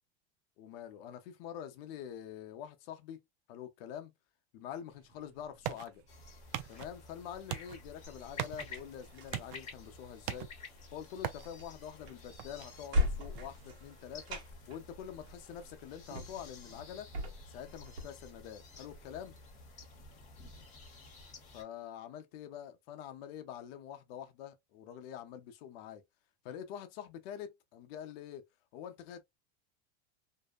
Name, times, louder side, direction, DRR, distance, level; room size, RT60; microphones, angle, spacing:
voice 1, 0.6-3.2 3.5-4.1 4.5-6.0 6.7-10.5 10.9-14.4 14.7-17.1 17.5-19.4 21.5-26.0 26.4-28.4 28.7-29.2, left 9 dB, 65° left, 0.7 m, -46 dB
sound 1, 4.9-16.4, right 12 dB, 55° right, 0.4 m, -46 dB
sound 2, 6.1-21.6, left 3 dB, 20° left, 1.0 m, -52 dB
sound 3, 8.0-18.0, left 1 dB, 85° right, 1.0 m, -40 dB
2.7 x 2.1 x 2.3 m
supercardioid pair, 130°, 32 cm